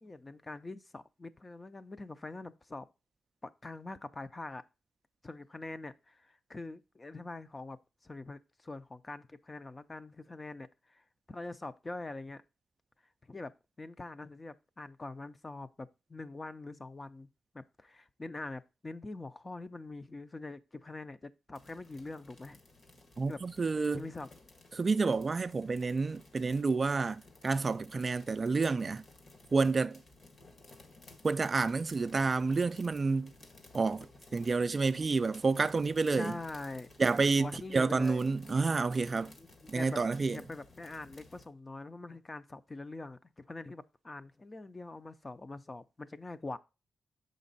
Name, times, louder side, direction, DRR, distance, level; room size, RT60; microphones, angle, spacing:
voice 1, 0.0-2.9 3.4-4.6 5.2-7.8 8.0-12.4 13.2-13.5 13.8-17.3 17.5-22.6 23.3-23.4 23.9-24.3 36.1-36.9 37.4-38.2 39.4-40.0 40.3-46.6, left 2 dB, 25° left, 0.5 m, -44 dB
sound 1, 21.5-41.5, left 2 dB, 55° left, 1.4 m, -57 dB
voice 2, 23.2-24.0 24.7-29.0 29.5-30.0 31.2-33.3 33.7-34.1 34.3-36.3 37.0-39.3 39.7-40.4, right 4 dB, 35° right, 0.3 m, -29 dB
6.4 x 5.1 x 4.0 m
cardioid pair, 110°, 0 cm